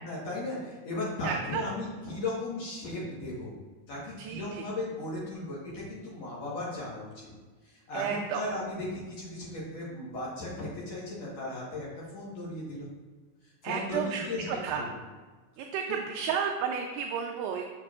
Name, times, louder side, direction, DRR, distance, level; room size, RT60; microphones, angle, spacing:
voice 1, 0.0-3.5 3.9-7.3 7.6-11.9 12.1-12.9 13.6-14.4 14.7-15.0 15.9-16.0, left 2 dB, 60° left, -7 dB, 1.7 m, -36 dB
voice 2, 1.2-1.6 4.2-4.7 7.9-8.4 13.6-14.9 15.6-17.6, right 7 dB, 85° right, 2 dB, 2.4 m, -32 dB
6.8 x 6.5 x 2.4 m, 1.4 s
omnidirectional pair, 4.7 m